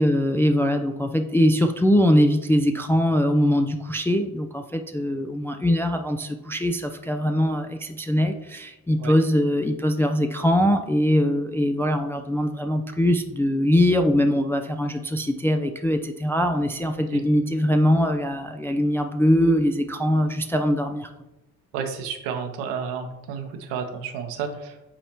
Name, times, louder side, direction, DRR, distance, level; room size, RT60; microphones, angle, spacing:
voice 1, 0.0-21.1, equal, 5° left, 5 dB, 0.3 m, -22 dB
voice 2, 21.7-24.8, right 6 dB, 65° right, 6 dB, 1.0 m, -31 dB
8.7 x 4.1 x 2.9 m, 0.96 s
figure-of-eight pair, 45°, 43 cm